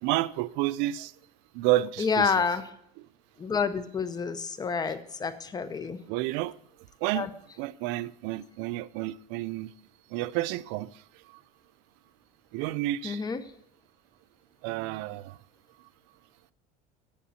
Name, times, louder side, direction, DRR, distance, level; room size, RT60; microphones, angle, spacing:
voice 1, 0.0-1.1 1.5-2.4 3.0-3.1 4.9-5.0 6.1-6.5 7.0-7.3 7.6-9.7 10.1-10.9 12.5-13.2 14.6-15.4, right 16 dB, 65° right, 0.5 m, -30 dB
voice 2, 2.0-2.6 3.4-6.0 7.1-7.3 13.0-13.4, left 5 dB, 20° left, 0.7 m, -28 dB
8.6 x 8.2 x 5.7 m
cardioid pair, 135°, 20 cm